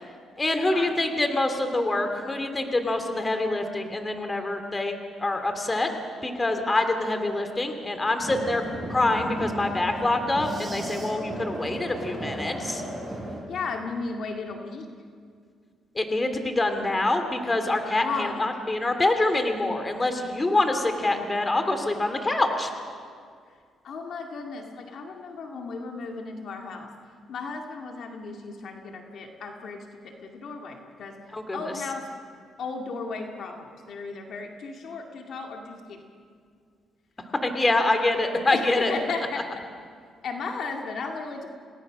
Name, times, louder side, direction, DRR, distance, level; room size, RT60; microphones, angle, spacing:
voice 1, 0.4-4.9 5.2-5.9 6.2-8.6 8.9-12.8 15.9-22.7 31.3-31.6 37.4-38.9, left 2 dB, 20° left, 7 dB, 2.8 m, -25 dB
sound 1, 8.2-13.4, right 1 dB, 15° right, 6.1 m, -34 dB
voice 2, 13.4-14.9 18.0-18.4 23.8-26.9 27.3-31.2 31.5-32.1 32.6-36.0 38.4-39.5 40.2-41.5, left 4 dB, 65° left, 2 dB, 2.1 m, -35 dB
27.5 x 18.5 x 6.3 m, 2.1 s
cardioid pair, 90°, 0 cm